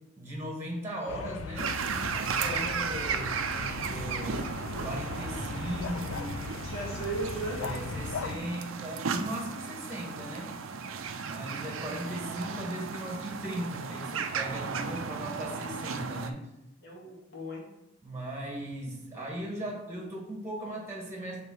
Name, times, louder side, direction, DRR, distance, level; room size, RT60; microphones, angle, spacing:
voice 1, 0.2-1.7 2.1-4.4 4.8-6.5 7.6-10.6 11.1-16.4 18.0-21.4, right 1 dB, 10° right, -1 dB, 1.4 m, -38 dB
sound 1, 1.1-8.4, left 5 dB, 80° left, 0.4 m, -39 dB
sound 2, 1.6-16.3, right 5 dB, 80° right, 0.5 m, -35 dB
voice 2, 6.6-7.6 16.8-17.7, right 2 dB, 55° left, -4 dB, 2.1 m, -36 dB
6.9 x 3.3 x 4.6 m, 0.88 s
head